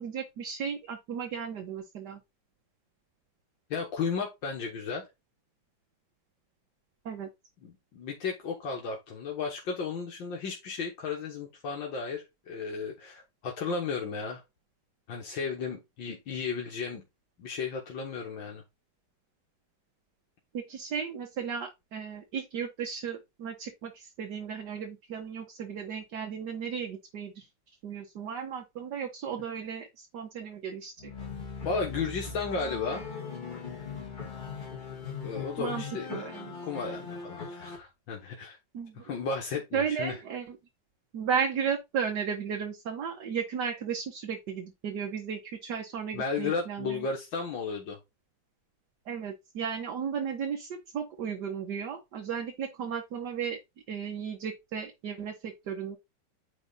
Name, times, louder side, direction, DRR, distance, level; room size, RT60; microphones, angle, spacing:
voice 1, 0.0-2.2 7.1-7.3 20.5-27.5 27.8-31.1 35.6-35.8 36.1-36.5 38.7-39.0 39.7-40.6 41.1-47.1 49.1-53.6 53.9-56.0, right 7 dB, 65° right, 1.6 m, -34 dB
voice 2, 3.7-5.0 7.6-14.4 15.1-17.0 17.4-18.6 31.7-33.1 35.2-36.1 36.6-38.6 39.0-40.2 46.1-48.0, left 5 dB, 80° left, 2.1 m, -34 dB
sound 1, 31.0-37.8, left 5 dB, 25° left, 1.8 m, -39 dB
9.1 x 3.3 x 4.0 m
omnidirectional pair, 2.1 m